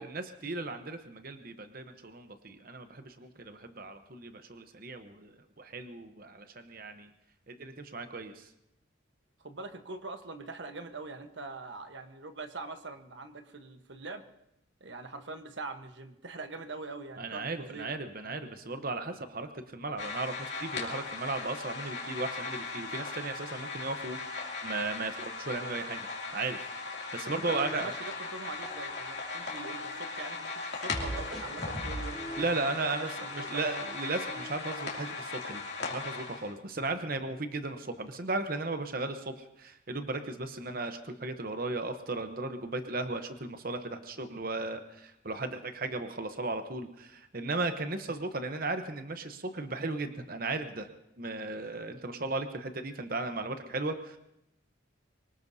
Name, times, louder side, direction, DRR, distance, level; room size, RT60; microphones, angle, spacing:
voice 1, 0.0-7.1 7.5-8.5 17.2-26.6 27.1-27.9 32.4-50.9 51.2-54.2, right 3 dB, 45° right, 8 dB, 0.9 m, -36 dB
voice 2, 9.4-14.2 14.8-17.9 27.3-33.6, right 3 dB, 65° right, 7 dB, 1.1 m, -43 dB
sound 1, 20.0-36.5, left 4 dB, 60° left, 2.7 m, -38 dB
sound 2, 27.4-28.1 28.4-30.1 30.9-35.0, right 1 dB, ahead, 4.7 m, -43 dB
24.5 x 19.0 x 2.7 m, 0.83 s
head